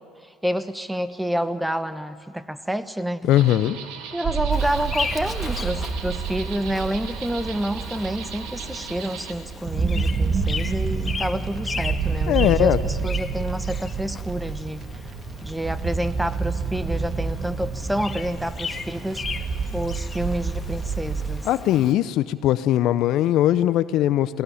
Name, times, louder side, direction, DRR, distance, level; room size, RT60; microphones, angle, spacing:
voice 1, 0.4-3.3 4.1-14.9 15.4-19.2 19.7-21.5, equal, 5° right, 12 dB, 1.1 m, -28 dB
voice 2, 3.2-3.8 12.3-12.8 21.4-24.4, left 13 dB, 60° left, 15 dB, 0.6 m, -20 dB
sound 1, 3.3-9.3, right 7 dB, 70° right, 2.2 m, -38 dB
sound 2, 4.2-21.4, right 5 dB, 45° right, 1.6 m, -28 dB
Bird vocalization bird call bird song, 4.5-21.9, left 4 dB, 30° left, 1.6 m, -37 dB
20.5 x 18.5 x 10.0 m, 2.1 s
hypercardioid pair, 70°, 0 cm